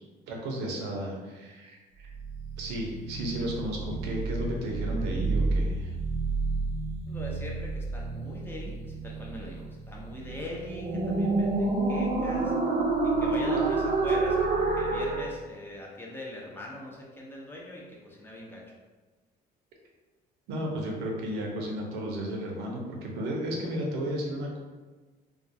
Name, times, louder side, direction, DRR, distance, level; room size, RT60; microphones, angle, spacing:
voice 1, 0.3-2.1 2.6-5.9 20.5-24.6, right 1 dB, 90° right, -1 dB, 0.6 m, -33 dB
sound 1, 2.1-15.3, right 3 dB, 40° right, 0.4 m, -29 dB
voice 2, 7.1-12.5 13.0-18.7, left 1 dB, 15° left, -3 dB, 0.6 m, -42 dB
2.3 x 2.2 x 2.6 m, 1.3 s
cardioid pair, 110°, 17 cm